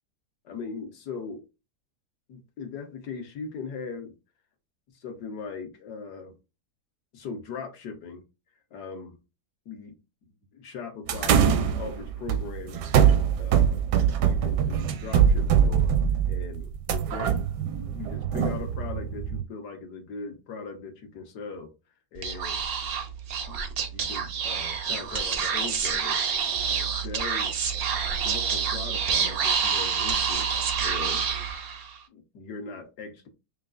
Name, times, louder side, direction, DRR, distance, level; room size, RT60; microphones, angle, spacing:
voice 1, 0.4-1.4 2.3-4.1 5.0-6.4 7.1-8.2 8.7-9.2 9.6-10.0 10.5-13.8 14.2-16.0 16.3-17.4 17.9-21.7 22.1-22.6 23.5-23.6 23.9-26.2 26.8-27.5 28.1-30.5 30.8-31.2 32.1-33.3, left 5 dB, 75° left, 1.5 m, -39 dB
sound 1, 11.1-19.4, right 8 dB, 85° right, 1.2 m, -23 dB
Speech / Whispering, 22.2-32.0, right 6 dB, 70° right, 0.5 m, -28 dB
5.7 x 2.4 x 2.5 m
omnidirectional pair, 1.8 m